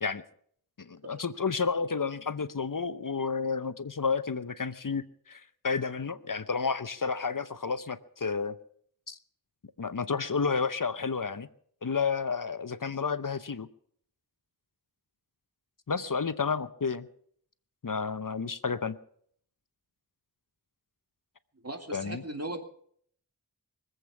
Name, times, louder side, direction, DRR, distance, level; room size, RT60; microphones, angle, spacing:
voice 1, 0.8-8.6 9.1-9.2 9.8-11.5 11.8-13.7 15.9-17.1 17.8-19.0 21.9-22.2, left 5 dB, 55° left, 13 dB, 0.8 m, -31 dB
voice 2, 21.6-22.6, right 1 dB, 40° right, 5 dB, 2.5 m, -38 dB
24.0 x 8.1 x 7.0 m, 0.62 s
wide cardioid pair, 45°, 38 cm